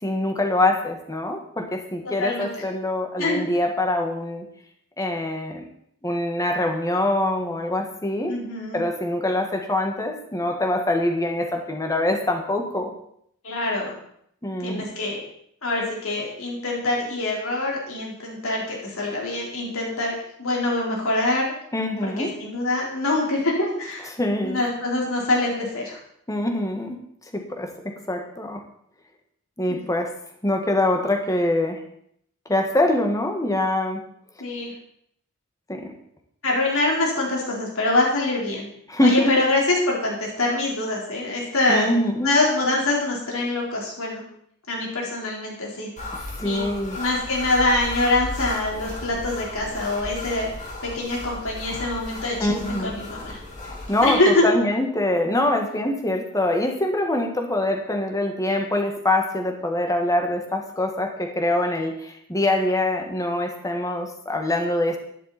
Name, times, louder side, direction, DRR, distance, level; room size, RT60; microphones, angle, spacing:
voice 1, 0.0-4.4 5.0-5.6 6.0-8.3 8.7-12.9 14.4-14.9 21.7-22.3 24.1-24.7 26.3-27.0 27.3-28.6 29.6-30.1 30.4-31.8 32.5-34.0 35.7-35.9 38.9-39.3 41.7-42.3 46.4-47.0 52.4-53.0 53.6-65.0, left 1 dB, 15° left, 4 dB, 1.7 m, -24 dB
voice 2, 8.3-8.8 13.4-13.9 14.6-15.2 15.6-20.1 20.4-21.4 22.0-24.1 24.4-26.0 29.7-29.8 34.4-34.7 36.4-38.7 39.0-39.6 39.9-41.9 42.2-44.2 44.7-45.9 46.4-46.6 47.0-50.5 50.8-53.4 54.0-54.4, left 2 dB, 65° left, -2 dB, 4.3 m, -24 dB
sound 1, 46.0-54.2, left 2 dB, 35° left, 3.2 m, -35 dB
12.0 x 11.0 x 4.3 m, 0.70 s
head